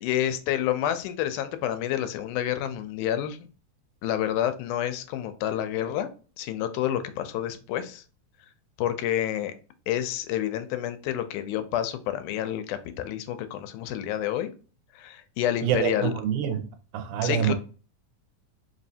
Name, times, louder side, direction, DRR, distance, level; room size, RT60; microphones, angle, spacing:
voice 1, 0.0-3.4 4.0-6.1 6.4-8.0 8.8-9.5 9.9-14.5 15.0-16.1 17.2-17.5, left 11 dB, 80° left, 2.0 m, -29 dB
voice 2, 15.6-16.7 16.9-17.5, right 9 dB, 90° right, 2.1 m, -26 dB
4.8 x 3.1 x 2.7 m
omnidirectional pair, 3.6 m